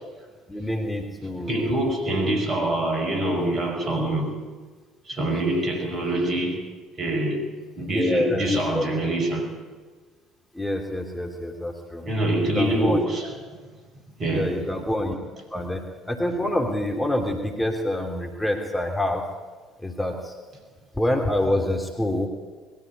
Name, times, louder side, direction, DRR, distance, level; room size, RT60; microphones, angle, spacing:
voice 1, 0.5-1.9 7.9-8.5 8.7-8.8 10.5-12.1 12.6-13.0 14.3-15.2 15.5-19.2 19.8-20.3 21.0-22.3, left 1 dB, 10° left, 2 dB, 3.1 m, -26 dB
voice 2, 1.2-4.4 5.1-6.6 7.0-7.5 7.8-9.5 12.0-13.3 14.2-14.6, right 1 dB, 40° right, 3 dB, 5.8 m, -25 dB
21.0 x 14.0 x 9.7 m, 1.4 s
figure-of-eight pair, 55°, 0 cm